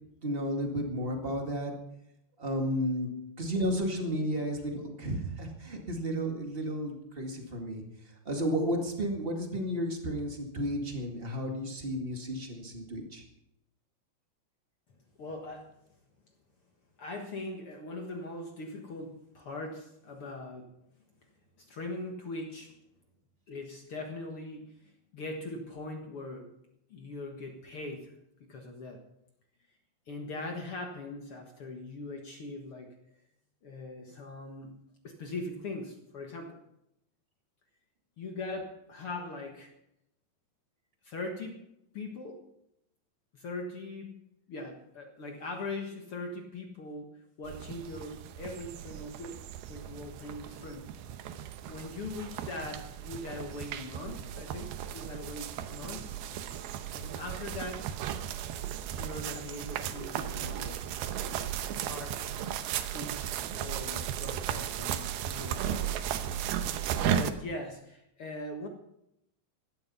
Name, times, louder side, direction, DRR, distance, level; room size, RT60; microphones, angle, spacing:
voice 1, 0.2-1.7 2.4-3.1 3.4-7.8 8.2-13.2, equal, 30° right, 2 dB, 1.0 m, -32 dB
voice 2, 15.2-15.7 17.0-20.7 21.6-22.7 23.5-26.5 26.9-28.1 28.4-29.0 30.1-32.9 33.6-36.6 38.2-39.7 41.0-41.6 41.9-42.4 43.3-44.1 44.5-49.4 49.7-50.9 51.6-56.0 56.9-57.9 58.9-60.9 61.8-62.3 62.9-66.0 66.9-68.7, left 2 dB, 60° left, 3 dB, 1.4 m, -41 dB
sound 1, 47.4-67.3, right 10 dB, 75° right, 2.6 m, -35 dB
16.5 x 12.5 x 5.6 m, 0.80 s
omnidirectional pair, 4.8 m